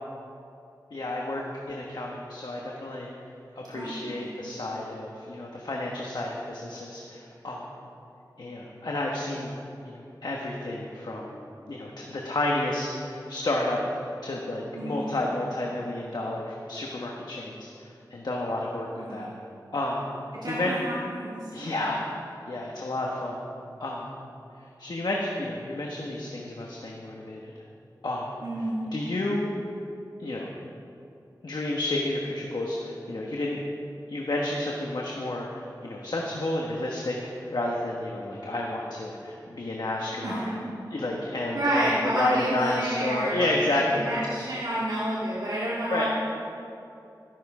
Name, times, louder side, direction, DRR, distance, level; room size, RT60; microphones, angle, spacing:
voice 1, 0.9-3.1 3.5-7.7 8.4-9.5 9.8-11.4 11.7-13.8 14.2-19.3 19.7-20.0 20.5-20.8 21.5-22.0 22.5-23.4 23.8-24.1 24.8-27.5 28.0-28.3 28.9-29.5 30.2-30.5 31.4-33.6 34.1-40.5 40.9-44.2 45.9-46.1, left 1 dB, 75° left, -2 dB, 1.4 m, -31 dB
voice 2, 3.7-4.3 14.7-15.2 18.9-19.3 20.3-21.9 28.4-28.8 40.2-40.7 41.5-43.5 43.9-46.1, right 1 dB, 75° right, -8 dB, 2.2 m, -30 dB
13.0 x 12.5 x 4.9 m, 2.7 s
wide cardioid pair, 65°, 7 cm